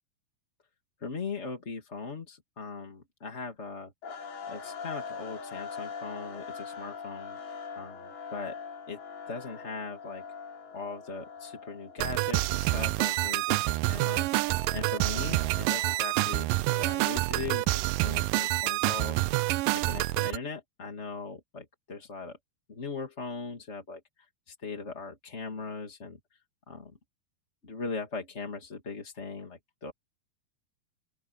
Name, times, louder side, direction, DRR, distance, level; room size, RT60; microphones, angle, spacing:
voice 1, 1.0-3.9 4.5-7.4 7.8-8.6 8.9-9.0 9.3-10.2 10.7-19.2 19.7-22.4 22.7-26.2 26.7-26.9 27.6-29.9, left 4 dB, 25° left, 1.8 m, -39 dB
sound 1, 4.0-16.4, left 5 dB, 80° left, 6.4 m, -43 dB
sound 2, 12.0-20.4, right 19 dB, 80° right, 2.1 m, -27 dB
open air
omnidirectional pair, 4.4 m